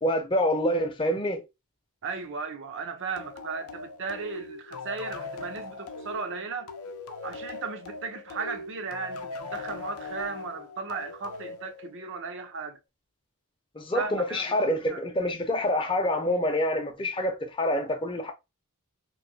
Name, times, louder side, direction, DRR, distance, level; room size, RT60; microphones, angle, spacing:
voice 1, 0.0-1.4 13.7-18.3, left 1 dB, 25° left, 0.6 m, -26 dB
voice 2, 2.0-6.7 7.2-12.8 13.9-15.0, right 4 dB, 55° right, 0.6 m, -36 dB
sound 1, 3.2-12.4, left 3 dB, 75° left, 0.5 m, -40 dB
3.0 x 2.6 x 2.6 m
head